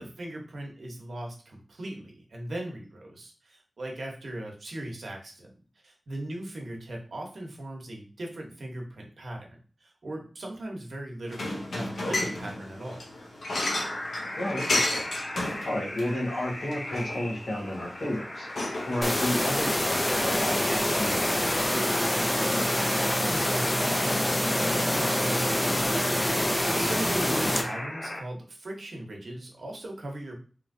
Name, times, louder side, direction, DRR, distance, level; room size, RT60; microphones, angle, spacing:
voice 1, 0.0-5.5 5.8-11.4 11.7-13.0 22.6-30.4, right 1 dB, 75° right, 0 dB, 0.9 m, -39 dB
sound 1, 11.3-19.8, left 2 dB, 90° left, 0.7 m, -33 dB
sound 2, 13.7-28.2, left 1 dB, 55° left, 0.8 m, -37 dB
voice 2, 14.4-22.0 27.3-27.6, left 1 dB, 70° left, -3 dB, 1.2 m, -33 dB
sound 3, 19.0-27.6, left 1 dB, 25° left, 0.5 m, -26 dB
3.1 x 2.9 x 2.6 m, 0.39 s
cardioid pair, 55°, 0 cm